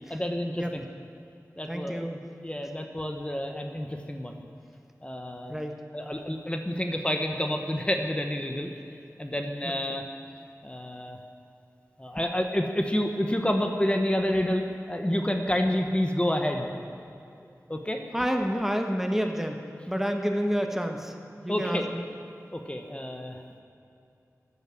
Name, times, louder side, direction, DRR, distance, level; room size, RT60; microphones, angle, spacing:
voice 1, 0.1-0.8 1.6-2.0 2.4-4.4 5.0-5.5 5.9-8.7 9.2-10.0 10.6-11.2 12.0-16.7 17.7-18.0 21.5-21.9 22.5-23.4, left 1 dB, 20° left, 4 dB, 1.2 m, -29 dB
voice 2, 1.7-2.2 5.5-5.8 9.6-9.7 18.1-21.1 21.4-22.0, equal, 5° right, 4 dB, 1.3 m, -29 dB
13.5 x 9.8 x 7.6 m, 2.6 s
wide cardioid pair, 45°, 6 cm